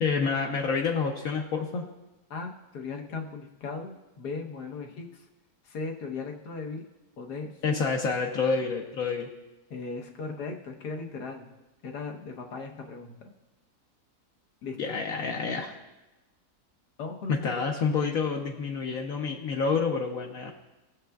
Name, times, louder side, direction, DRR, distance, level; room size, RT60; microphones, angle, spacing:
voice 1, 0.0-1.9 7.6-9.3 14.8-15.7 17.3-20.5, left 5 dB, 65° left, 1 dB, 1.1 m, -28 dB
voice 2, 2.3-5.2 5.6-6.8 7.2-7.8 9.7-11.5 11.8-13.3 14.6-14.9 17.0-17.7, left 4 dB, 80° left, 2 dB, 1.6 m, -37 dB
19.0 x 6.8 x 2.3 m, 1.0 s
omnidirectional pair, 1.7 m